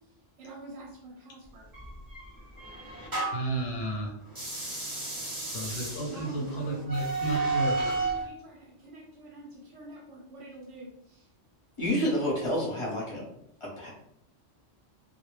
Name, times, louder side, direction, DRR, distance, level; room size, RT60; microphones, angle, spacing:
voice 1, 0.4-1.7 6.0-6.9 7.7-11.3, right 2 dB, 90° right, -3 dB, 0.9 m, -46 dB
sound 1, 1.7-3.6 4.3-8.2, right 3 dB, 25° right, 0.6 m, -33 dB
voice 2, 3.3-4.1 5.5-8.0, right 2 dB, 65° left, 0 dB, 0.7 m, -32 dB
voice 3, 11.8-13.3 13.6-13.9, equal, 30° left, -5 dB, 0.8 m, -29 dB
2.1 x 2.1 x 3.0 m, 0.74 s
omnidirectional pair, 1.2 m